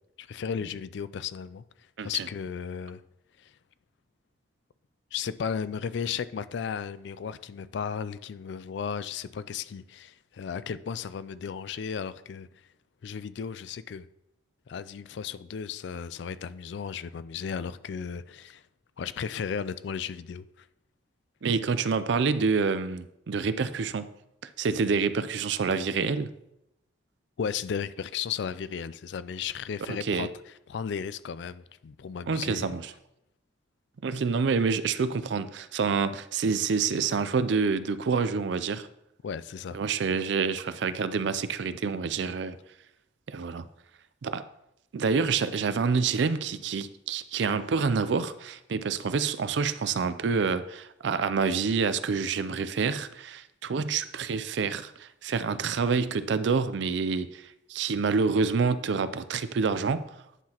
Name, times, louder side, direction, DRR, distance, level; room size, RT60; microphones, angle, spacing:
voice 1, 0.2-1.6 2.0-3.0 3.4-3.5 5.1-12.5 13.0-14.1 14.7-18.6 19.0-20.7 27.4-30.3 30.7-32.7 39.2-39.8, left 7 dB, 65° left, 0.3 m, -35 dB
voice 2, 21.4-24.1 24.6-26.3 29.9-30.3 32.3-32.9 34.0-38.9 39.7-42.6 43.3-43.7 44.2-44.4 44.9-60.1, right 5 dB, 70° right, 0.4 m, -27 dB
10.0 x 5.8 x 2.9 m
head